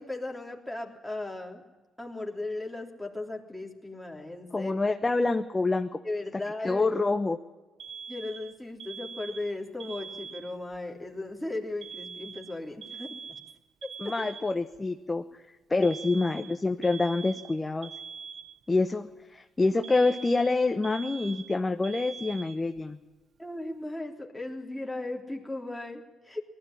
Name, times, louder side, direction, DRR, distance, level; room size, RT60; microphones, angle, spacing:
voice 1, 0.0-1.6 2.0-4.8 6.0-6.9 8.1-13.4 14.0-14.1 15.8-15.9 23.4-26.4, left 2 dB, ahead, -1 dB, 3.4 m, -37 dB
voice 2, 4.5-6.0 6.6-7.4 14.0-15.4 15.7-17.9 18.7-23.0, left 3 dB, 20° left, 6 dB, 1.0 m, -27 dB
Alarm, 7.8-10.8 11.8-14.8 15.8-18.8 19.8-22.8, right 6 dB, 60° right, 0.9 m, -43 dB
19.5 x 14.0 x 9.9 m, 1.2 s
cardioid pair, 90°, 0 cm